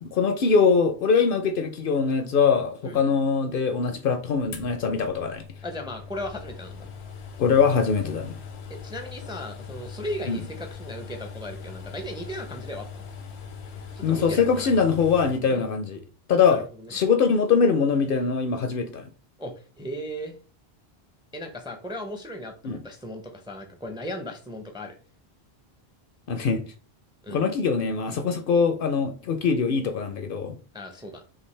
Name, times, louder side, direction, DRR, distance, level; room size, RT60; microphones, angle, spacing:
voice 1, 0.0-5.4 7.4-8.3 10.3-10.4 14.0-16.0 16.3-16.6 16.9-19.0 22.6-22.8 26.3-26.6 27.3-30.6, left 5 dB, 60° left, 0.7 m, -22 dB
Extractor Fan, 4.5-15.4, left 6 dB, 85° left, 1.0 m, -41 dB
voice 2, 5.6-6.9 8.7-13.1 13.9-14.8 15.5-15.6 16.5-16.9 19.4-20.4 21.3-25.0 27.2-27.4 30.7-31.3, equal, 5° right, 0.5 m, -36 dB
5.8 x 2.5 x 3.2 m
omnidirectional pair, 1.1 m